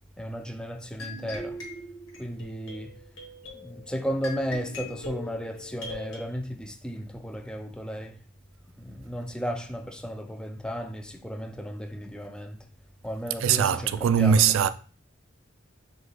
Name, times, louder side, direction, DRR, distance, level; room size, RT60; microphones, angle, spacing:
voice 1, 0.2-1.6 2.2-3.0 3.5-8.2 8.8-12.7 13.0-14.5, equal, 5° left, 0.4 m, -34 dB
sound 1, 1.0-6.2, left 2 dB, 75° left, 1.3 m, -41 dB
voice 2, 13.4-14.7, right 7 dB, 80° right, 0.3 m, -21 dB
5.1 x 2.4 x 3.9 m
head